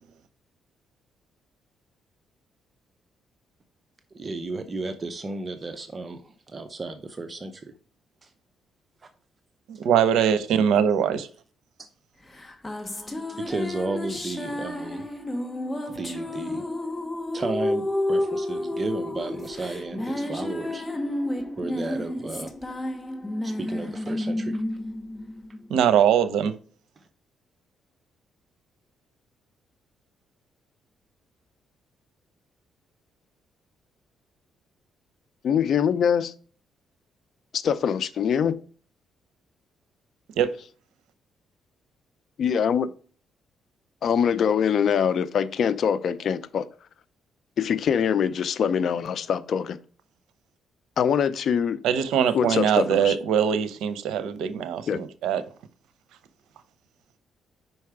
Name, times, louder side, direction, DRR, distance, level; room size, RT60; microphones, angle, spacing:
voice 1, 4.1-7.7 8.2-8.3 11.8-11.9 13.0-15.2 15.8-16.6 17.3-20.8 21.6-22.5 23.4-24.6 27.0-27.1, right 2 dB, 30° right, 0.7 m, -34 dB
voice 2, 9.7-11.3 25.7-26.5 40.4-40.5 51.8-55.4, right 8 dB, 85° right, 0.7 m, -22 dB
sound 1, 12.3-26.0, left 1 dB, 15° left, 1.1 m, -31 dB
voice 3, 35.4-36.3 37.6-38.6 42.4-42.9 44.0-46.7 47.6-49.8 51.0-51.8 52.3-53.2 54.9-55.0, left 7 dB, 60° left, 0.5 m, -23 dB
5.5 x 4.7 x 4.8 m
cardioid pair, 90°, 0 cm